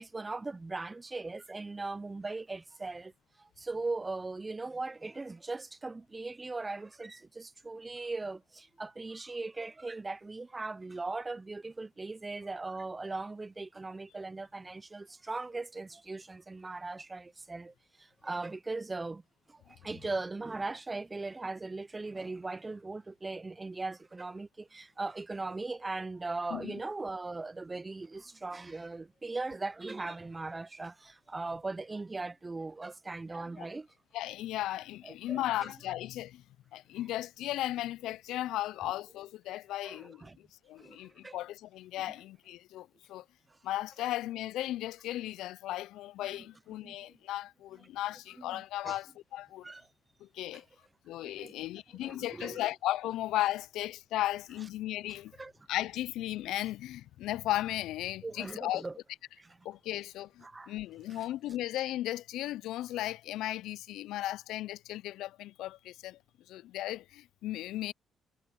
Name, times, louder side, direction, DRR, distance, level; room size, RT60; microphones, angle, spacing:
voice 1, 0.0-3.1 3.4-19.2 19.5-33.9 35.3-35.7 39.8-40.4 40.8-41.0 41.2-41.4 46.8-47.2 48.4-49.0 49.6-49.8 51.2-51.5 52.0-52.7 55.4-55.5 58.2-59.0 59.4-59.6 60.4-60.7 61.1-61.2, right 3 dB, 20° right, 0.5 m, -39 dB
voice 2, 34.1-36.4 36.7-43.2 43.6-49.7 50.2-50.6 51.1-55.3 55.7-58.8 59.6-66.2 66.5-67.9, left 14 dB, 90° left, 0.3 m, -36 dB
cardioid pair, 90°, 0 cm